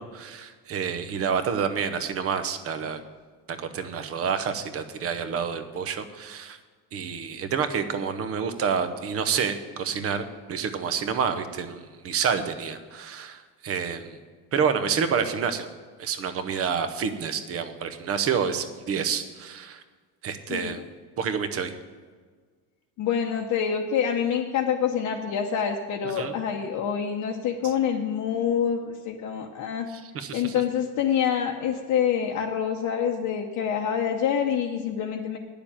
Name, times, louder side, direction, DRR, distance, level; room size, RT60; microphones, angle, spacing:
voice 1, 0.0-3.0 3.5-6.6 6.9-14.2 14.5-15.7 16.0-19.8 20.2-20.8 21.2-21.8 26.2-26.3 27.6-27.7 29.9-30.6, right 6 dB, 40° right, 10 dB, 0.9 m, -28 dB
voice 2, 23.0-29.9 30.3-35.4, left 8 dB, 50° left, 1 dB, 0.9 m, -26 dB
10.0 x 7.0 x 8.7 m, 1.5 s
cardioid pair, 165°, 38 cm